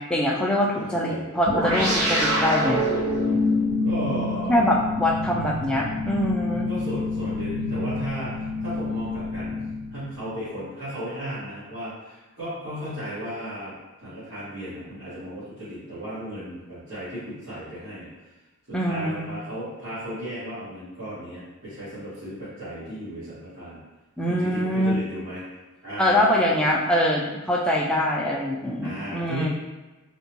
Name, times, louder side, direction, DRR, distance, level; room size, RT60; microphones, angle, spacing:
voice 1, 0.0-2.8 4.5-6.7 18.7-19.3 24.2-24.9 26.0-29.5, left 1 dB, 5° left, -2 dB, 0.3 m, -23 dB
voice 2, 0.7-1.2 3.8-4.6 6.7-9.6 9.9-18.1 18.7-23.8 24.3-25.4 25.8-26.2 28.8-29.5, equal, 65° right, -14 dB, 1.5 m, -35 dB
sound 1, 1.5-10.3, left 1 dB, 85° right, 0.7 m, -26 dB
3.7 x 2.2 x 2.9 m, 1.1 s
head